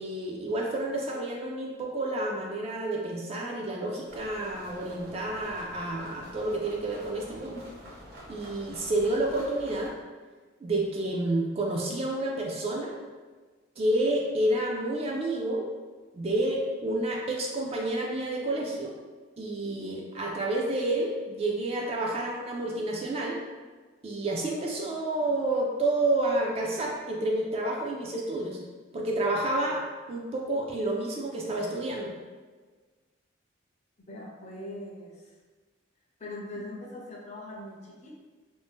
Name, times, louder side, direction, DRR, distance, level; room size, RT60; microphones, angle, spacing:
voice 1, 0.0-7.7 8.3-10.0 10.6-13.0 13.8-15.7 16.1-18.9 19.4-23.4 24.0-28.6 28.9-29.8 30.1-32.1, right 1 dB, 30° right, -2 dB, 0.3 m, -29 dB
sound 1, 4.1-9.9, equal, 50° right, 0.7 m, -47 dB
voice 2, 34.1-35.3 36.2-38.2, left 1 dB, 35° left, -2 dB, 0.5 m, -41 dB
2.6 x 2.0 x 3.4 m, 1.4 s
head